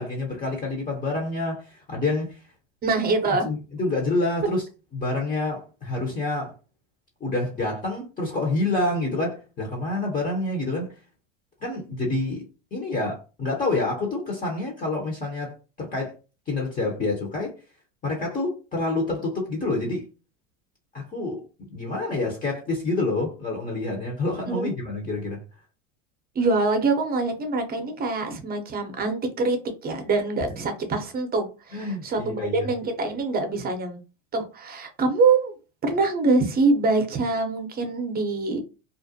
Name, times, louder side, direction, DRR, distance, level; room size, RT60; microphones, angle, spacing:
voice 1, 0.0-2.4 3.4-4.7 4.9-6.5 7.2-10.9 11.6-16.1 16.5-17.5 18.0-20.1 20.9-25.4 31.7-32.7, left 2 dB, 20° left, 0.8 m, -28 dB
voice 2, 2.8-3.5 24.5-24.7 26.3-34.0 34.3-35.5 35.8-38.6, right 3 dB, 25° right, 0.7 m, -24 dB
2.5 x 2.0 x 2.7 m
hypercardioid pair, 100°, 37 cm